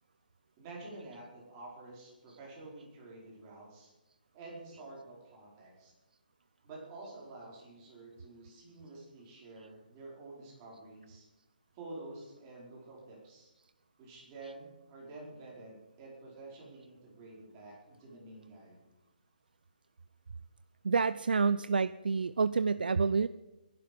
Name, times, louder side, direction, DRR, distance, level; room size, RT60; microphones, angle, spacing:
voice 1, 0.6-3.9 4.3-5.9 6.6-11.3 11.7-13.5 14.0-18.9, right 2 dB, 20° right, -4 dB, 4.8 m, -49 dB
voice 2, 20.8-23.3, right 5 dB, 85° right, 14 dB, 0.5 m, -28 dB
22.0 x 11.5 x 5.2 m, 1.1 s
hypercardioid pair, 170°, 5 cm